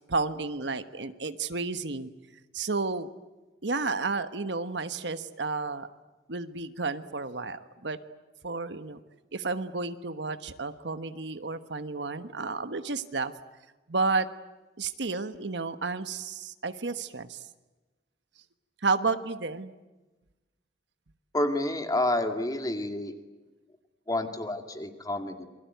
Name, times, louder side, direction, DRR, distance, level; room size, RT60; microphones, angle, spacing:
voice 1, 0.1-2.1 2.5-3.1 3.6-5.9 6.3-8.0 8.4-9.0 9.3-13.3 13.9-14.3 14.8-17.4 18.8-19.7, right 3 dB, 70° right, 11 dB, 1.3 m, -31 dB
voice 2, 21.3-23.1 24.1-25.5, left 1 dB, 20° left, 6 dB, 2.2 m, -29 dB
27.5 x 22.5 x 9.3 m, 1.1 s
head